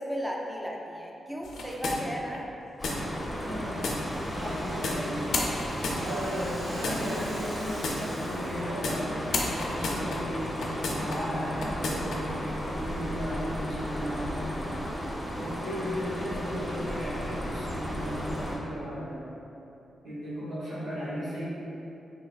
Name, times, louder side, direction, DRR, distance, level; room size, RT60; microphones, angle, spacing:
voice 1, 0.0-2.5, equal, 5° right, -1 dB, 0.6 m, -34 dB
sound 1, 1.4-2.4 2.8-3.0 3.8-4.0 4.8-5.0 5.3-6.4 6.8-7.0 7.8-8.0 8.8-9.0 9.3-11.2 11.6-12.2, left 3 dB, 75° left, 0.4 m, -31 dB
sound 2, 2.8-18.6, equal, 15° left, 1.0 m, -35 dB
Rattle (instrument), 3.0-8.8 9.1-9.2 9.6-10.1, equal, 60° right, 1.3 m, -47 dB
voice 2, 3.5-3.8 4.3-5.3 5.9-10.6 10.9-12.3 12.6-14.7 15.3-19.2 20.0-21.4, equal, 85° right, -16 dB, 1.2 m, -35 dB
3.8 x 3.5 x 2.4 m, 3.0 s
supercardioid pair, 40°, 0 cm